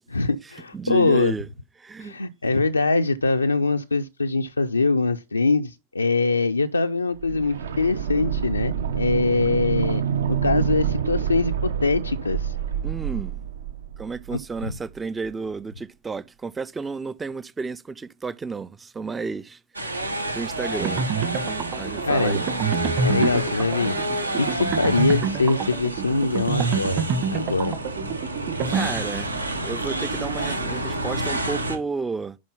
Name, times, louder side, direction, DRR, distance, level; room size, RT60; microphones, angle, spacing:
voice 1, 0.1-1.3 2.0-10.0 10.3-12.6 14.6-14.7 22.0-22.4 23.0-24.0 24.3-27.8, left 3 dB, 80° left, 0.4 m, -23 dB
voice 2, 0.7-1.5 1.8-2.2 12.8-13.4 14.0-19.6 19.9-20.0 20.3-21.1 21.7-22.4 28.7-32.4, right 4 dB, 15° right, 0.4 m, -32 dB
sound 1, 7.2-15.0 15.2-15.3, right 8 dB, 65° right, 0.9 m, -27 dB
sound 2, 19.8-31.8, right 1 dB, 80° right, 1.4 m, -29 dB
sound 3, 20.8-29.4, right 6 dB, 35° right, 1.4 m, -28 dB
11.0 x 4.3 x 5.5 m
figure-of-eight pair, 90°, 0 cm